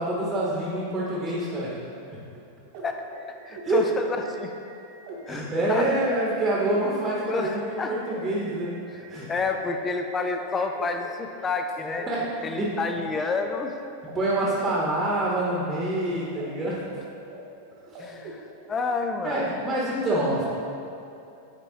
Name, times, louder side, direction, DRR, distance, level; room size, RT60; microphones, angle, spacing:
voice 1, 0.0-1.8 3.6-3.9 5.3-8.7 9.1-9.3 12.1-12.2 12.6-12.8 14.1-16.8 17.9-18.1 19.2-20.4, right 1 dB, 15° right, -6 dB, 1.1 m, -26 dB
sound 1, 1.1-11.9 12.2-13.7 14.1-14.2 14.4-16.5 16.7-17.4 17.6-19.1 19.4-19.5, right 2 dB, 45° right, 1.1 m, -45 dB
voice 2, 3.5-4.5 5.3-5.9 7.3-8.0 9.3-12.1 12.4-13.7 15.2-15.3 18.0-19.8, left 4 dB, 20° left, 5 dB, 0.5 m, -29 dB
9.5 x 4.0 x 2.8 m, 2.7 s
figure-of-eight pair, 90°, 0 cm